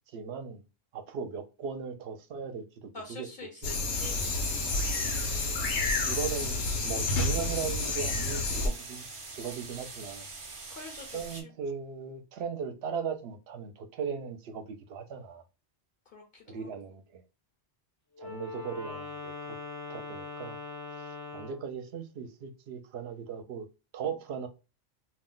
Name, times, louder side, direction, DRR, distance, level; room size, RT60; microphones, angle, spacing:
voice 1, 0.1-0.6 0.9-3.5 4.0-4.2 4.8-5.0 6.0-9.1 9.3-10.3 11.1-15.4 16.5-17.2 18.2-19.6 19.9-20.6 21.3-23.7 23.9-24.5, right 6 dB, 70° right, 0.8 m, -38 dB
voice 2, 2.9-4.2 4.7-5.7 10.7-11.4 16.1-16.7, left 4 dB, 60° left, 0.7 m, -47 dB
sound 1, 3.6-8.7, left 3 dB, 85° left, 1.0 m, -30 dB
sound 2, 4.0-11.4, right 3 dB, 40° right, 0.4 m, -44 dB
Wind instrument woodwind instrument, 18.1-21.7, left 4 dB, 35° left, 0.3 m, -41 dB
2.4 x 2.1 x 3.7 m
omnidirectional pair, 1.1 m